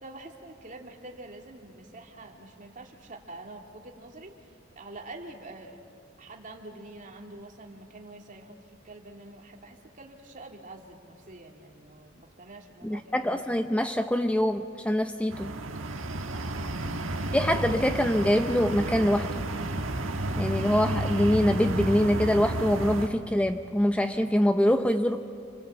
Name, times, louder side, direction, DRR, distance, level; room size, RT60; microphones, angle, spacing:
voice 1, 0.0-5.8 6.2-13.2 16.5-16.9, right 2 dB, 40° right, 1 dB, 2.6 m, -46 dB
voice 2, 12.8-15.6 17.3-19.3 20.4-25.2, equal, 5° left, 7 dB, 0.6 m, -24 dB
sound 1, 15.3-23.1, right 1 dB, 85° right, 1.5 m, -31 dB
29.0 x 24.5 x 8.0 m, 2.3 s
head